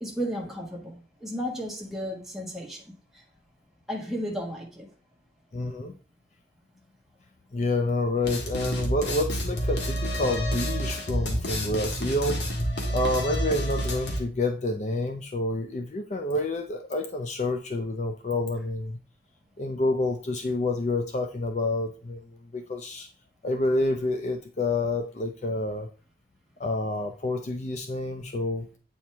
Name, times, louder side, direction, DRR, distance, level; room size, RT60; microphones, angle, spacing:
voice 1, 0.0-2.8 3.9-4.9, equal, ahead, 1.5 m, -33 dB
voice 2, 5.5-6.0 7.5-12.5 12.9-19.0 19.6-22.2 22.5-23.1 23.4-25.9 26.6-28.7, left 2 dB, 40° left, 0.5 m, -28 dB
sound 1, 8.2-14.2, equal, 65° left, 1.7 m, -29 dB
8.4 x 4.5 x 3.4 m
head